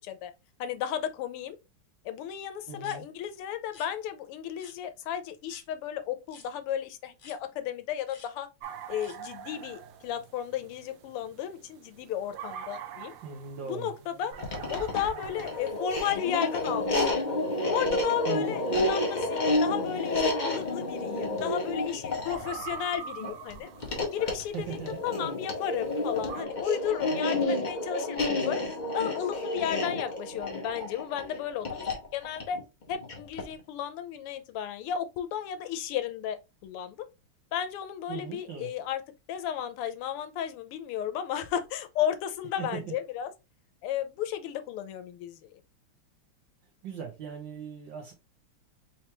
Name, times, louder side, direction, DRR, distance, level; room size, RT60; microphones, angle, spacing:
voice 1, 0.6-1.6 2.0-8.5 8.9-13.1 13.6-14.3 14.7-17.2 17.7-23.7 24.1-28.6 28.9-32.6 32.9-36.4 36.6-37.1 37.5-39.0 39.3-43.3 43.8-45.5, left 10 dB, 90° left, 1.6 m, -34 dB
voice 2, 2.7-3.0 13.2-13.9 18.3-18.6 24.5-25.0 38.1-38.7 42.6-42.8 46.8-48.1, right 7 dB, 60° right, 1.5 m, -39 dB
sound 1, 2.8-3.0 3.7-3.9 4.6-4.8 5.5-5.7 6.3-6.5 7.2-7.4 8.1-8.3 9.0-9.2, left 5 dB, 60° left, 1.6 m, -51 dB
sound 2, 8.6-26.4, right 7 dB, 85° right, 1.5 m, -46 dB
sound 3, 14.3-33.6, left 2 dB, 40° left, 0.6 m, -30 dB
4.4 x 3.3 x 2.9 m
omnidirectional pair, 2.4 m